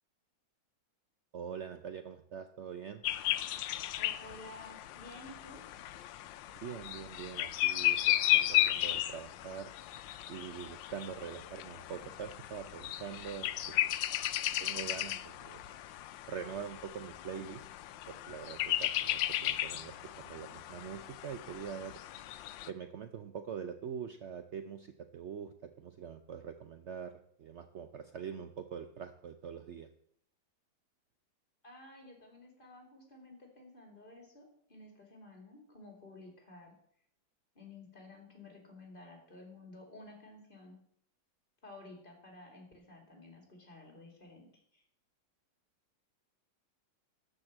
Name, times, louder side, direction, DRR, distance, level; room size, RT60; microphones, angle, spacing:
voice 1, 1.3-3.0 6.5-9.7 10.3-13.9 14.6-15.6 16.3-17.6 18.1-22.2 22.7-29.9, right 7 dB, 75° right, 9 dB, 0.6 m, -44 dB
sound 1, 3.0-22.7, left 14 dB, 90° left, 1.3 m, -35 dB
voice 2, 4.0-5.6 31.6-36.7 37.5-40.8 41.6-44.8, left 2 dB, 25° left, 2 dB, 2.7 m, -53 dB
12.5 x 5.3 x 7.4 m, 0.67 s
omnidirectional pair, 2.0 m